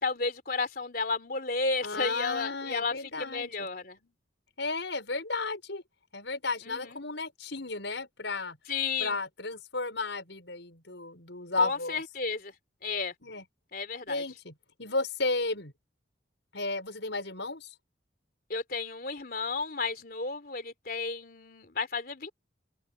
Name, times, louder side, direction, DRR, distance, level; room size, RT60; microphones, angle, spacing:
voice 1, 0.0-4.0 6.6-7.0 8.7-9.2 11.6-12.5 12.8-13.1 13.7-14.2 18.5-22.3, left 4 dB, 50° left, 3.4 m, -32 dB
voice 2, 1.8-3.7 4.6-5.8 6.1-8.6 9.0-12.0 13.2-13.4 14.1-14.5 14.8-15.7 16.5-17.7, left 3 dB, 70° left, 5.6 m, -33 dB
open air
head